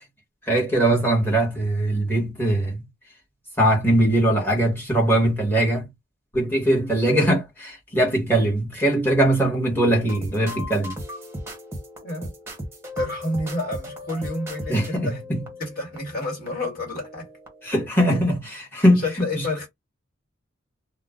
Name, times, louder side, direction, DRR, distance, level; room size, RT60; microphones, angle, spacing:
voice 1, 0.5-2.9 3.6-5.9 6.3-10.9 14.7-15.4 17.6-19.0, right 1 dB, 10° left, 1.1 m, -21 dB
sound 1, 10.0-17.7 18.0-18.3, left 1 dB, 10° right, 0.8 m, -37 dB
voice 2, 12.0-12.3 13.0-15.2 15.6-17.3 18.9-19.7, left 1 dB, 45° left, 1.5 m, -29 dB
2.4 x 2.0 x 3.5 m
head